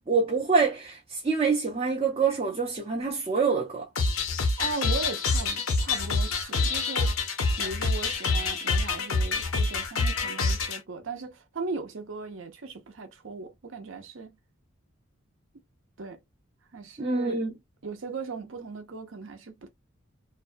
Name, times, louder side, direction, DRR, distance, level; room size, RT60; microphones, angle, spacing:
voice 1, 0.1-3.9 17.0-17.5, right 4 dB, 30° right, 0.5 m, -26 dB
sound 1, 4.0-10.8, left 3 dB, 90° left, 0.8 m, -26 dB
voice 2, 4.6-7.1 7.6-14.4 16.0-16.2 16.7-17.4 17.8-19.7, right 4 dB, 65° right, 0.7 m, -38 dB
2.6 x 2.2 x 2.5 m
head